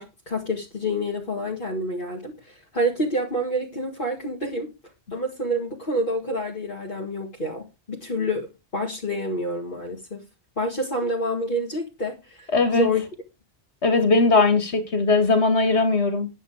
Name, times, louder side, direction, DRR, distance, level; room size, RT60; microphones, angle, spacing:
voice 1, 0.0-4.7 5.1-8.5 8.7-10.2 10.6-13.0, equal, 50° left, 2.2 m, -28 dB
voice 2, 12.5-12.9 13.8-16.3, left 3 dB, 90° left, 2.2 m, -19 dB
9.9 x 7.8 x 4.9 m
omnidirectional pair, 1.1 m